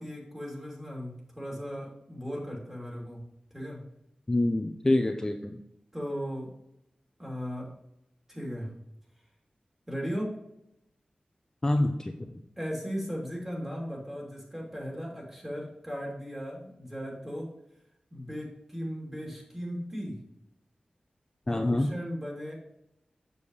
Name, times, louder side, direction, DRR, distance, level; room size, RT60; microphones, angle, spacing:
voice 1, 0.0-3.2 3.5-3.8 5.9-6.5 7.2-7.7 8.3-8.7 9.9-10.3 12.6-17.5 18.1-20.2 21.5-22.5, equal, 15° right, -3 dB, 3.0 m, -37 dB
voice 2, 4.3-5.6 11.6-12.1 21.5-21.9, left 1 dB, 20° left, 4 dB, 0.5 m, -26 dB
7.0 x 6.9 x 3.2 m, 0.81 s
wide cardioid pair, 95°, 3 cm